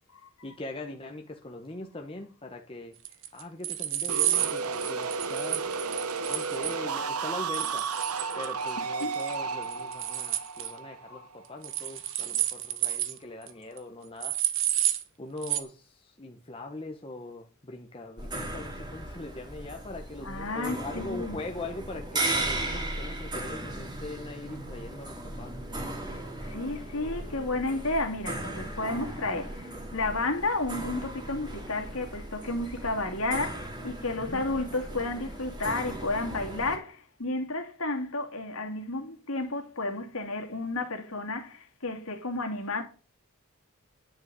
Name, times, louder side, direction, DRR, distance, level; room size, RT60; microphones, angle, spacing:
voice 1, 0.4-2.9 3.3-5.6 6.3-7.8 8.4-14.4 15.2-25.5 34.3-34.4, left 2 dB, 25° left, 1.2 m, -41 dB
sound 1, 3.1-6.7 7.5-8.7 9.0-9.3 9.6-10.7 11.6-13.2 13.5-13.6 13.8-13.9 14.2-15.0 15.4-15.6, right 12 dB, 60° right, 1.4 m, -30 dB
sound 2, 4.1-11.8, right 5 dB, 90° right, 1.0 m, -33 dB
sound 3, 18.2-36.8, right 1 dB, 20° right, 2.6 m, -37 dB
voice 2, 20.2-21.4 26.1-42.8, left 2 dB, 70° left, 2.6 m, -32 dB
10.5 x 6.0 x 7.7 m
head